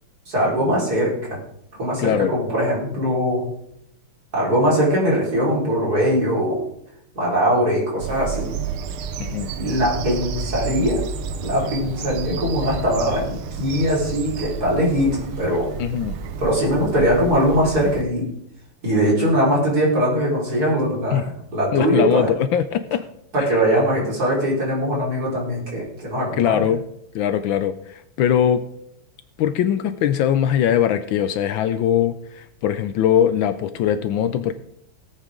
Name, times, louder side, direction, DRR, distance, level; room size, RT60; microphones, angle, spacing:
voice 1, 0.3-1.1 1.8-3.4 4.3-6.6 7.1-8.5 9.6-11.0 11.4-15.1 15.4-15.7 16.4-18.2 18.8-22.3 23.3-26.6, equal, 45° right, -5 dB, 5.1 m, -21 dB
voice 2, 2.0-2.3 9.2-9.5 15.8-16.1 21.1-21.2 21.7-23.0 23.4-23.6 26.4-26.8 27.1-28.6 29.4-34.5, left 9 dB, 75° left, 11 dB, 1.3 m, -21 dB
Bird vocalization bird call bird song, 8.0-18.0, right 7 dB, 85° right, 1.7 m, -31 dB
18.0 x 8.3 x 3.8 m, 0.73 s
omnidirectional pair, 2.3 m